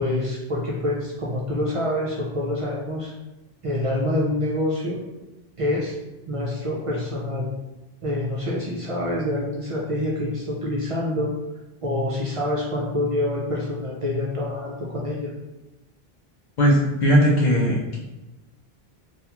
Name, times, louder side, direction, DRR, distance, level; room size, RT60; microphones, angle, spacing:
voice 1, 0.0-3.1 3.6-5.0 5.6-6.0 6.3-7.5 8.0-11.3 11.8-15.3, left 1 dB, 55° right, -5 dB, 0.3 m, -26 dB
voice 2, 16.6-18.0, equal, 55° left, -3 dB, 0.6 m, -18 dB
2.4 x 2.3 x 2.8 m, 1.0 s
omnidirectional pair, 1.0 m